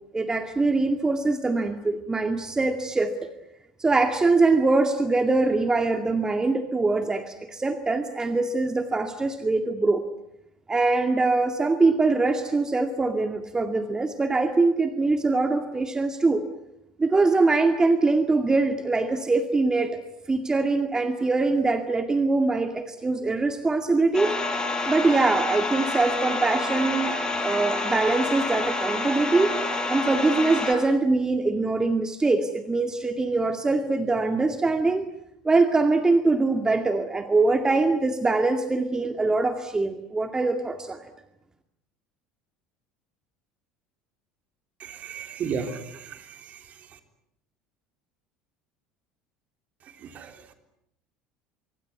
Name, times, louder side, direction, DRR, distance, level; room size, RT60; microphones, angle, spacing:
voice 1, 0.1-3.3 3.8-10.0 10.7-16.5 17.0-20.0 20.3-24.4 24.9-29.6 29.9-35.1 35.4-41.1, right 3 dB, 15° right, 7 dB, 2.2 m, -23 dB
sound 1, 24.1-30.7, left 2 dB, 20° left, 5.7 m, -28 dB
voice 2, 44.8-46.8 50.0-50.5, right 6 dB, 40° right, 7 dB, 3.6 m, -35 dB
25.5 x 24.0 x 9.5 m, 0.82 s
figure-of-eight pair, 70°, 4 cm